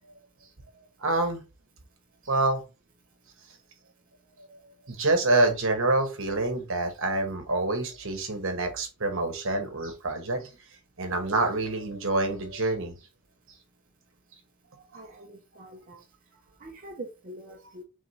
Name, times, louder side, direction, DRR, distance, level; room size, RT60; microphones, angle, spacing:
voice 1, 1.0-1.4 2.3-2.6 4.9-10.5 11.0-12.9, right 2 dB, 60° right, 5 dB, 1.1 m, -26 dB
voice 2, 14.9-16.0 16.6-17.8, right 1 dB, 40° right, 0 dB, 0.7 m, -44 dB
3.5 x 3.5 x 4.0 m, 0.29 s
head